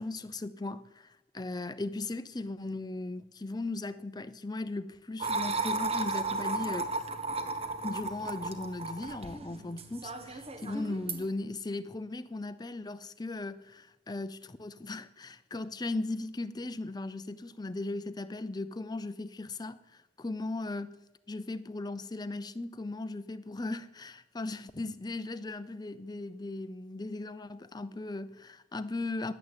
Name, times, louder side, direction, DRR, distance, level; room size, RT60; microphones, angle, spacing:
voice 1, 0.0-6.9 7.8-21.0 21.3-29.3, left 2 dB, 25° left, 0.6 m, -37 dB
sound 1, 5.2-11.3, right 3 dB, 35° right, 1.3 m, -34 dB
13.0 x 10.5 x 8.9 m
head